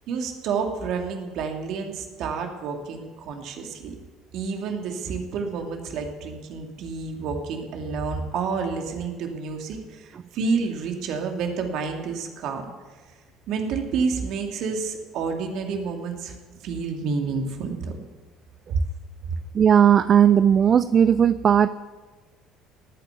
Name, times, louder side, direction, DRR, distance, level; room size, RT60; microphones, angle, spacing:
voice 1, 0.1-4.0 4.3-12.7 13.5-16.3 16.6-18.0, right 5 dB, 60° right, 3 dB, 2.4 m, -29 dB
voice 2, 19.5-21.7, right 8 dB, 45° right, 15 dB, 0.4 m, -17 dB
18.5 x 9.1 x 7.0 m, 1.4 s
figure-of-eight pair, 60°, 0 cm